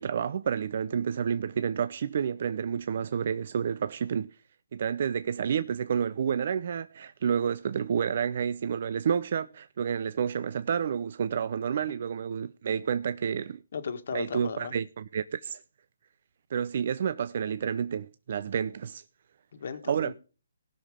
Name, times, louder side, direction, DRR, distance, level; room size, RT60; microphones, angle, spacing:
voice 1, 0.0-4.3 4.7-13.6 14.1-15.6 16.5-19.0 19.9-20.1, right 7 dB, 50° right, 0.5 m, -30 dB
voice 2, 13.7-14.7 19.5-20.1, left 6 dB, 55° left, 1.6 m, -36 dB
19.5 x 6.6 x 3.6 m
hypercardioid pair, 155°, 0 cm